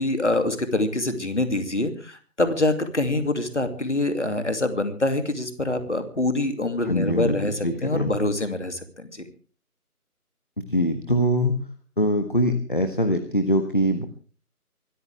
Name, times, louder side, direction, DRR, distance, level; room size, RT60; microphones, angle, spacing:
voice 1, 0.0-9.2, left 2 dB, 50° left, 8 dB, 2.6 m, -25 dB
voice 2, 6.9-8.1 10.6-11.6 12.0-14.0, equal, 35° left, 7 dB, 1.4 m, -23 dB
24.5 x 14.0 x 3.4 m, 0.38 s
figure-of-eight pair, 175°, 46 cm